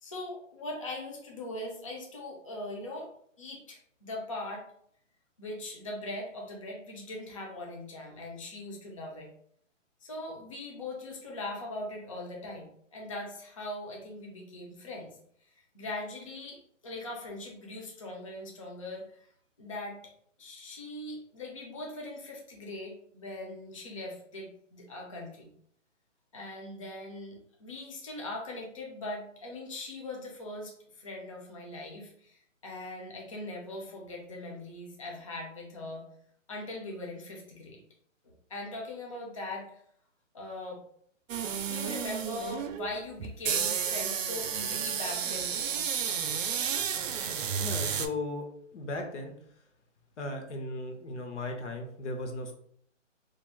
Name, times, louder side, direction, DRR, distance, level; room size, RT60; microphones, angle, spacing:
voice 1, 0.0-3.1 3.4-4.6 5.4-9.3 10.0-15.1 15.4-19.2 19.6-20.0 20.4-25.5 26.3-36.0 36.5-37.8 38.2-39.8 40.3-40.8 41.5-46.1, left 2 dB, 30° left, -1 dB, 0.4 m, -40 dB
sound 1, 41.3-48.1, right 8 dB, 80° right, 0.5 m, -32 dB
voice 2, 47.6-48.4 48.7-49.3 50.2-52.5, left 2 dB, 65° left, 3 dB, 0.9 m, -36 dB
3.0 x 2.5 x 2.2 m, 0.64 s
hypercardioid pair, 150°, 38 cm